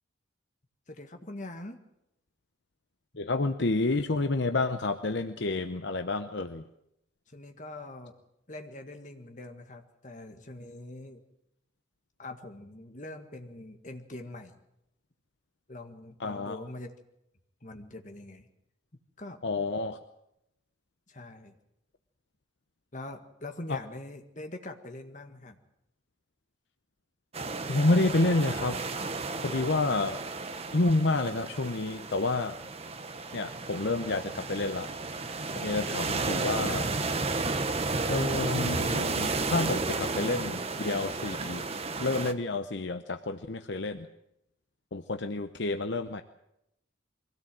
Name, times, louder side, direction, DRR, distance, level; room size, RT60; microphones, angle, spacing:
voice 1, 0.9-1.8 7.3-8.1 8.5-11.2 12.2-14.6 15.7-16.9 17.6-18.5 19.2-19.4 21.1-21.5 22.9-25.6, left 2 dB, 40° left, 5 dB, 1.8 m, -43 dB
voice 2, 3.2-6.6 16.2-16.6 19.4-20.0 23.7-23.8 27.7-28.8 29.4-30.2 30.7-32.6 33.3-34.9 35.5-36.9 38.1-41.6 42.0-44.1 44.9-46.2, left 2 dB, 60° left, 8 dB, 0.8 m, -29 dB
sound 1, 27.3-42.3, right 3 dB, 30° right, 1.0 m, -33 dB
23.0 x 16.5 x 7.7 m, 0.83 s
head